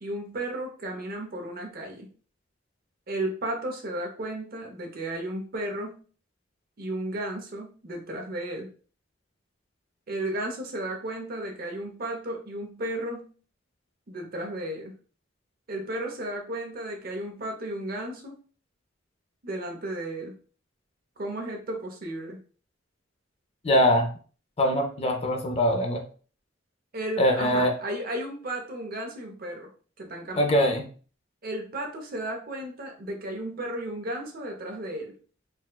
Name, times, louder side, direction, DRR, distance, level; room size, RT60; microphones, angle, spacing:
voice 1, 0.0-2.1 3.1-6.0 6.8-8.7 10.1-13.3 14.1-14.9 15.7-18.4 19.4-20.4 21.2-22.4 26.9-29.7 30.0-30.6 31.4-35.1, right 1 dB, 50° right, 2 dB, 0.7 m, -34 dB
voice 2, 23.6-24.1 24.6-26.0 27.2-27.7 30.4-30.9, equal, 30° left, 3 dB, 0.4 m, -22 dB
4.1 x 2.2 x 2.2 m, 0.40 s
head